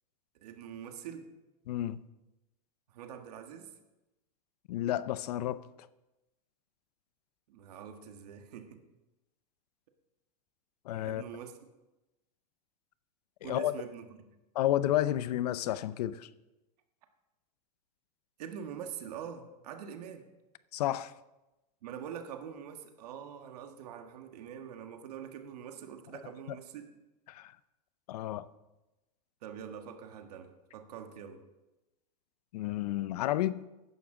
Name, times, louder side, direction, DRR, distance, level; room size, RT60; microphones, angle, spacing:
voice 1, 0.4-1.3 2.9-3.7 7.5-8.8 11.0-11.5 13.4-14.1 18.4-20.2 21.8-26.9 29.4-31.4, right 8 dB, 75° right, 1.6 m, -44 dB
voice 2, 1.7-2.0 4.7-5.6 10.9-11.2 13.4-13.7 14.5-16.3 20.7-21.1 27.3-27.6 28.1-28.5 32.5-33.7, left 13 dB, 70° left, 0.7 m, -31 dB
15.0 x 11.0 x 3.8 m
supercardioid pair, 150°, 21 cm